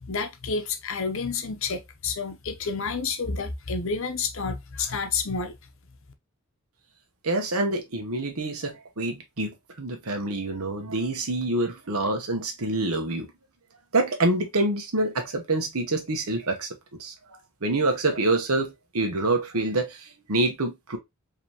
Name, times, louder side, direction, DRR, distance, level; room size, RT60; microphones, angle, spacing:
voice 1, 0.0-5.6, left 4 dB, 60° left, 0.8 m, -29 dB
voice 2, 7.2-13.3 13.9-16.7 17.0-21.0, right 2 dB, 75° right, 1.1 m, -26 dB
5.1 x 2.9 x 2.9 m
head